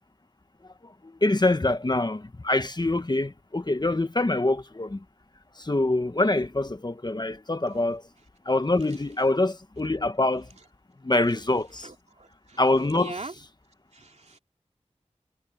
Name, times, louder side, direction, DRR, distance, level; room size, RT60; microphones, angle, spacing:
voice 1, 0.8-5.0 5.6-8.0 8.4-10.5 11.0-11.9 12.6-13.2, left 2 dB, 35° left, 1.1 m, -25 dB
voice 2, 11.8-13.3 13.9-14.4, right 3 dB, 65° right, 2.6 m, -41 dB
wide cardioid pair, 65°, 12 cm